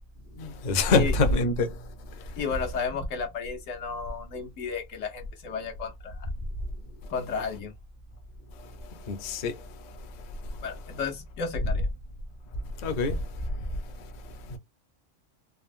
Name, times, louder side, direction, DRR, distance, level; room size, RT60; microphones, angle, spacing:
voice 1, 0.4-1.7 9.1-9.5 12.8-13.2 14.5-14.6, left 3 dB, 45° left, 0.6 m, -24 dB
voice 2, 2.4-6.3 7.1-7.7 10.6-11.9, left 5 dB, 85° left, 1.2 m, -33 dB
3.7 x 2.0 x 2.5 m
omnidirectional pair, 1.3 m